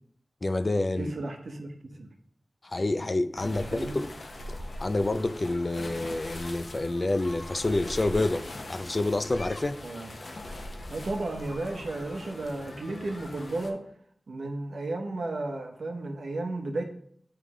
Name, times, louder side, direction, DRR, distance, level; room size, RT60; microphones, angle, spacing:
voice 1, 0.4-1.1 2.6-4.1 4.5-9.8, left 2 dB, 45° left, 0.4 m, -28 dB
voice 2, 1.0-2.1 3.4-4.0 9.8-10.1 10.9-13.8 14.3-16.8, right 2 dB, 85° right, 0.9 m, -34 dB
sound 1, 3.4-13.7, left 1 dB, 65° left, 0.8 m, -41 dB
8.9 x 3.3 x 3.6 m
wide cardioid pair, 60°, 0 cm